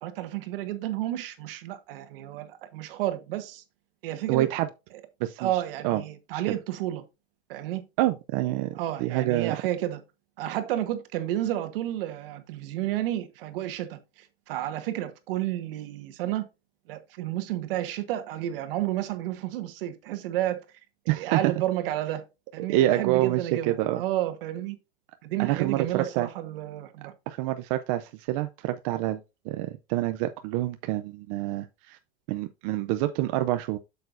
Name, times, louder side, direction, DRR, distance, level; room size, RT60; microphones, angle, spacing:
voice 1, 0.0-3.6 4.0-4.5 5.4-7.0 7.5-7.8 8.8-10.0 10.4-16.5 16.9-20.6 21.1-22.2 22.5-24.7 25.2-27.1, right 13 dB, 60° right, 1.4 m, -31 dB
voice 2, 4.3-4.7 5.2-6.0 6.3-6.4 8.0-9.6 21.1-21.5 22.6-24.0 25.4-26.3 27.3-29.2 29.5-32.0 32.3-33.8, right 15 dB, 35° right, 0.4 m, -27 dB
8.1 x 6.7 x 2.5 m
supercardioid pair, 155°, 33 cm